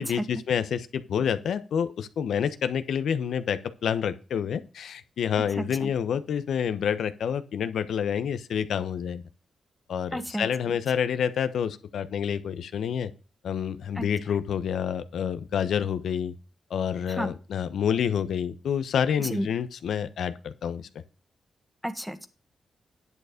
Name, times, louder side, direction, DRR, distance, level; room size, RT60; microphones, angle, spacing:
voice 1, 0.0-9.2 9.9-13.1 13.4-16.3 16.7-20.9, left 8 dB, 80° left, 12 dB, 1.0 m, -28 dB
voice 2, 5.6-5.9 10.1-10.5 13.9-14.1 17.1-17.3 19.3-19.5 21.8-22.3, equal, 5° right, 10 dB, 1.5 m, -31 dB
10.5 x 6.9 x 5.1 m, 0.35 s
cardioid pair, 80°, 0 cm